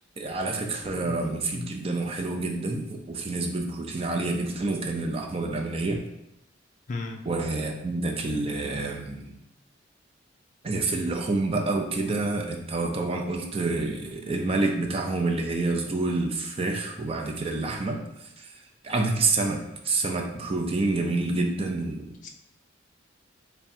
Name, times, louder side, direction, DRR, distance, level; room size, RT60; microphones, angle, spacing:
voice 1, 0.2-6.0 7.3-9.4 10.6-18.0 18.4-18.5 18.8-22.1, right 3 dB, 30° right, 2 dB, 0.4 m, -28 dB
voice 2, 6.9-7.2 22.2-22.3, left 3 dB, 40° left, 1 dB, 0.4 m, -35 dB
3.5 x 2.2 x 4.2 m, 0.87 s
head